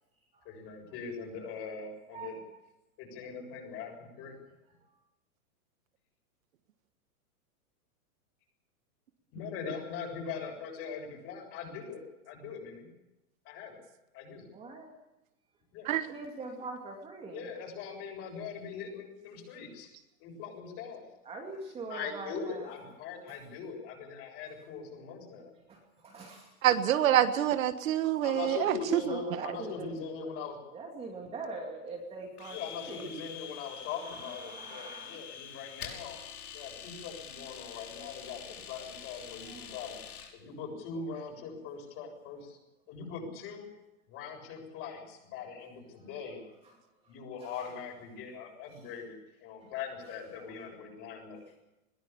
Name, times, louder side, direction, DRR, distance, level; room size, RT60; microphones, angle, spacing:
voice 1, 0.5-2.4 3.0-4.4 9.3-12.9 13.5-13.8 14.1-14.5 15.7-15.9 17.3-19.9 20.2-21.1 21.9-25.5 28.2-30.6 32.5-36.2 36.5-40.0 40.3-42.6 42.9-43.7 44.1-46.4 47.1-51.6, left 5 dB, 30° left, 2 dB, 7.2 m, -41 dB
voice 2, 2.1-2.4 3.2-3.3 4.8-4.9 14.5-14.9 16.1-17.5 21.2-22.7 23.3-23.4 25.7-26.6 29.1-30.0 30.7-33.1 34.0-35.2 39.4-39.8 40.9-41.0 46.0-46.1 46.6-47.7 48.7-48.8 49.6-49.7 50.5-50.6, right 3 dB, 15° right, 0 dB, 2.6 m, -44 dB
voice 3, 26.6-29.2, right 11 dB, 65° right, 10 dB, 1.6 m, -26 dB
Domestic sounds home sounds, 32.4-40.3, left 8 dB, 80° left, 6.0 m, -46 dB
21.0 x 19.5 x 7.1 m, 0.95 s
supercardioid pair, 165°, 44 cm